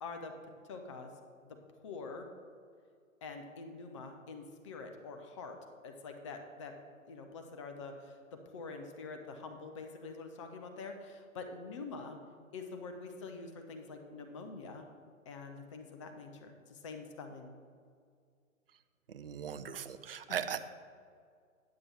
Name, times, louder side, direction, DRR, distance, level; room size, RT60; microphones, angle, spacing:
voice 1, 0.0-0.3 0.7-1.1 1.4-1.6 1.8-2.3 3.2-5.6 5.8-6.7 7.1-12.2 12.5-14.9 15.3-17.5, left 4 dB, 25° left, 5 dB, 0.5 m, -45 dB
voice 2, 19.1-20.6, right 8 dB, 45° right, 11 dB, 0.5 m, -38 dB
9.6 x 6.9 x 4.2 m, 2.2 s
figure-of-eight pair, 130°, 42 cm